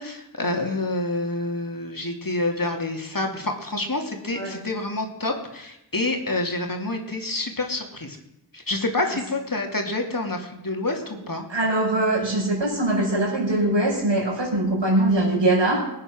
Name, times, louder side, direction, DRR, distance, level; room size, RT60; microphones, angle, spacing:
voice 1, 0.0-8.2 8.5-11.5, left 2 dB, 50° left, 2 dB, 2.6 m, -28 dB
voice 2, 11.5-15.9, right 1 dB, 75° right, -3 dB, 5.8 m, -22 dB
20.5 x 8.7 x 6.2 m, 0.85 s
wide cardioid pair, 40°, 44 cm